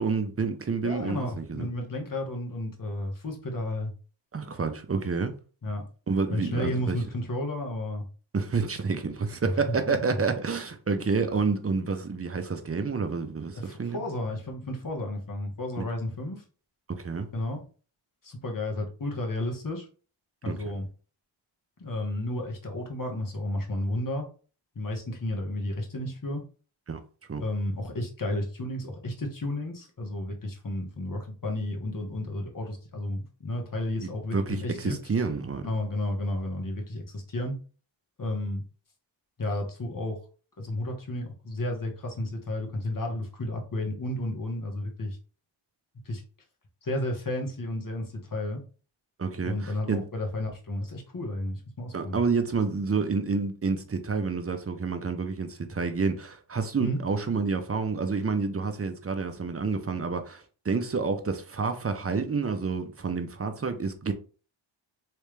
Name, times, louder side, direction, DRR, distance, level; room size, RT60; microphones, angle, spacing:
voice 1, 0.0-1.7 4.3-5.4 6.1-7.0 8.3-14.0 15.8-15.9 16.9-17.3 20.5-20.6 26.9-27.0 27.3-27.4 34.0-35.6 49.2-50.0 51.9-64.1, right 4 dB, 30° right, 0.6 m, -29 dB
voice 2, 0.8-3.9 5.6-5.9 6.3-8.0 9.4-10.2 11.2-11.3 13.5-16.4 17.3-17.6 18.2-19.9 20.4-20.9 21.8-24.3 24.7-26.4 27.4-35.0 35.6-37.6 38.2-38.6 39.4-40.2 40.6-45.2 46.0-46.2 46.8-48.6 49.4-52.2 56.8-57.0, left 1 dB, 40° left, 1.3 m, -32 dB
3.3 x 3.1 x 3.2 m
cardioid pair, 65°, 48 cm